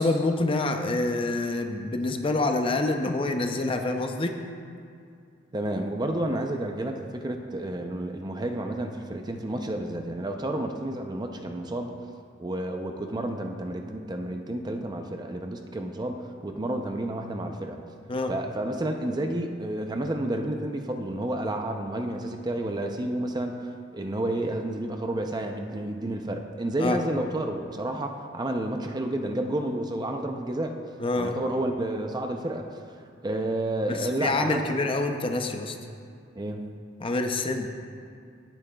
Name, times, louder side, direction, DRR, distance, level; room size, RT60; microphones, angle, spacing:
voice 1, 0.0-4.4 18.1-18.3 26.8-27.0 31.0-31.4 33.9-35.7 37.0-37.7, left 2 dB, 30° left, 5 dB, 0.5 m, -26 dB
voice 2, 5.5-12.0 12.4-17.8 18.3-30.8 31.1-32.7 33.2-34.8 36.3-36.7, right 1 dB, 20° right, 4 dB, 0.5 m, -30 dB
17.0 x 8.7 x 2.3 m, 2.4 s
head